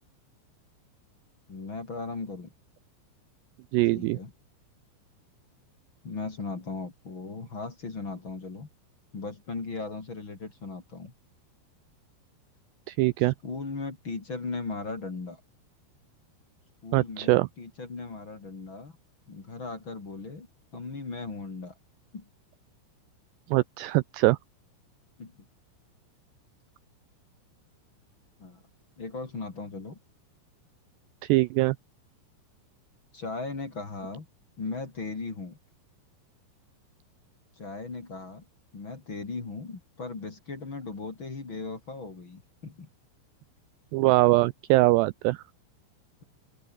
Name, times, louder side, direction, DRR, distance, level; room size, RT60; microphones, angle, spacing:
voice 1, 1.5-2.5 3.9-4.3 6.0-8.7 9.1-11.1 13.4-15.4 16.8-19.0 19.3-20.5 20.7-21.7 22.1-22.3 25.2-25.3 28.4-28.6 29.0-30.0 33.1-34.2 34.6-35.6 37.6-38.4 38.7-42.9, left 3 dB, 30° left, 3.4 m, -37 dB
voice 2, 3.7-4.2 12.9-13.3 16.9-17.5 23.5-24.4 31.2-31.8 43.9-45.4, right 20 dB, 90° right, 2.4 m, -22 dB
open air
omnidirectional pair, 5.6 m